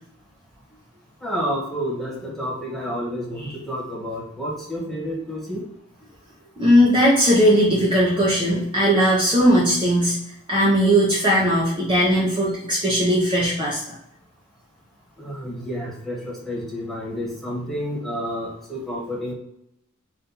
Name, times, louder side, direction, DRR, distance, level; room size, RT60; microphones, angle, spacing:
voice 1, 1.2-5.6 15.2-19.3, equal, ahead, -5 dB, 1.5 m, -30 dB
voice 2, 6.6-10.2 10.5-13.9, equal, 20° right, -6 dB, 0.9 m, -18 dB
4.2 x 2.6 x 4.1 m, 0.77 s
head